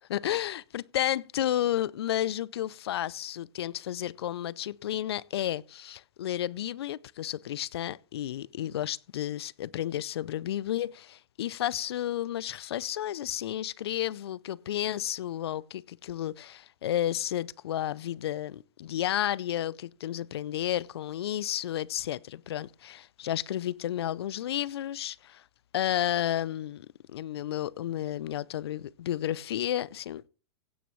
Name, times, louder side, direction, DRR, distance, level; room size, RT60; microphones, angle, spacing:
voice 1, 0.1-25.4 25.7-30.3, left 12 dB, 80° left, 0.4 m, -32 dB
16.5 x 8.5 x 3.1 m
hypercardioid pair, 125°, 13 cm